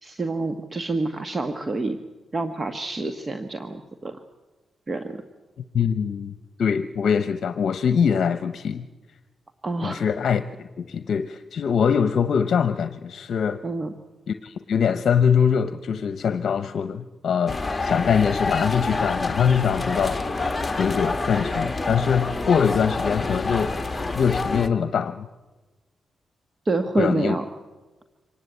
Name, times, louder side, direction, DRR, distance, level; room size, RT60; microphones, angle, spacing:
voice 1, 0.0-2.0 2.3-4.2 4.9-5.2 9.6-10.0 13.6-13.9 26.6-27.5, right 3 dB, 30° right, 8 dB, 1.5 m, -27 dB
voice 2, 5.7-6.3 6.6-8.9 9.8-13.6 14.3-20.2 20.7-23.8 24.1-25.3 27.0-27.3, left 7 dB, 65° left, 11 dB, 0.8 m, -23 dB
sound 1, 17.5-24.7, left 3 dB, 20° left, 1.8 m, -27 dB
25.0 x 19.0 x 8.4 m, 1.2 s
cardioid pair, 85°, 0 cm